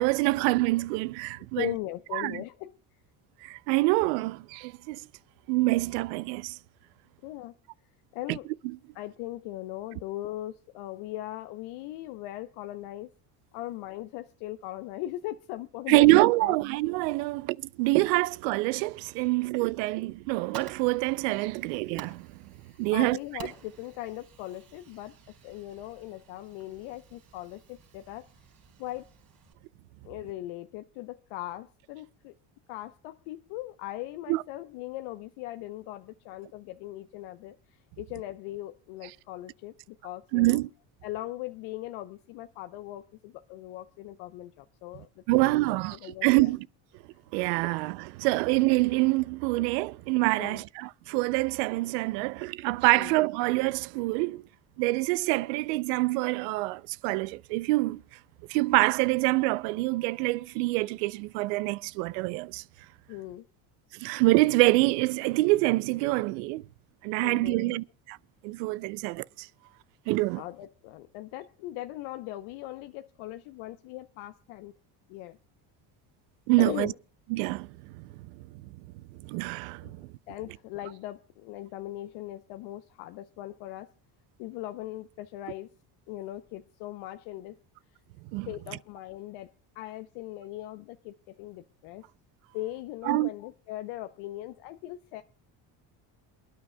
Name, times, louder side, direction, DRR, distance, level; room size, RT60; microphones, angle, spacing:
voice 1, 0.0-1.7 2.1-2.4 3.4-5.0 5.5-6.6 8.3-8.4 15.9-22.3 22.8-23.2 34.3-34.4 40.3-40.7 45.3-46.7 47.3-54.4 54.8-58.0 58.5-62.6 63.9-66.6 67.0-68.2 68.4-69.5 70.1-70.4 76.5-76.9 77.3-78.1 79.3-80.1 88.3-88.5 93.1-93.3, right 21 dB, 90° right, 0.6 m, -26 dB
voice 2, 1.6-2.7 7.2-7.5 8.1-8.5 8.9-13.1 13.5-16.6 22.6-25.2 25.4-28.3 28.8-29.1 30.0-32.3 32.7-40.6 41.0-46.5 50.4-50.6 52.9-53.1 63.1-63.4 67.2-67.8 70.4-74.7 75.1-75.4 76.6-76.9 79.8-79.9 80.3-83.9 84.4-85.7 86.1-87.6 88.5-92.0 92.5-95.2, left 15 dB, 75° left, 0.8 m, -39 dB
Fire, 20.1-29.5, right 8 dB, 50° right, 4.9 m, -51 dB
27.5 x 9.6 x 2.2 m
supercardioid pair, 95°, 47 cm